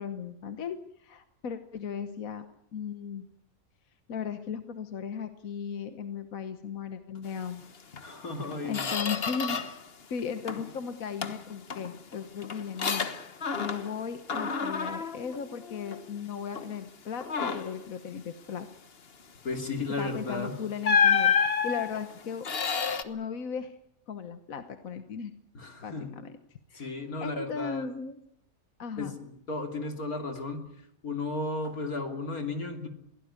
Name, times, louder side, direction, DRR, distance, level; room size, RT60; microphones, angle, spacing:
voice 1, 0.0-2.5 2.7-3.2 4.1-7.7 8.3-8.4 8.6-9.6 10.1-13.1 13.6-18.7 20.0-22.5 22.8-23.8 24.1-25.3 25.8-26.4 26.7-26.9 27.2-28.2 28.8-29.2, left 6 dB, 70° left, 9 dB, 1.5 m, -36 dB
Squeak, 7.9-8.1 8.4-9.9 10.2-10.8 11.2-14.0 14.3-16.1 16.5-16.8 17.2-17.8 19.9-20.1 20.8-23.0, left 6 dB, 45° left, 1.4 m, -29 dB
voice 2, 8.0-8.9 19.4-20.6 25.5-26.1 26.7-27.9 29.0-30.6 31.0-32.9, left 3 dB, 90° left, 4 dB, 3.4 m, -34 dB
22.0 x 17.0 x 9.7 m, 0.77 s
omnidirectional pair, 1.5 m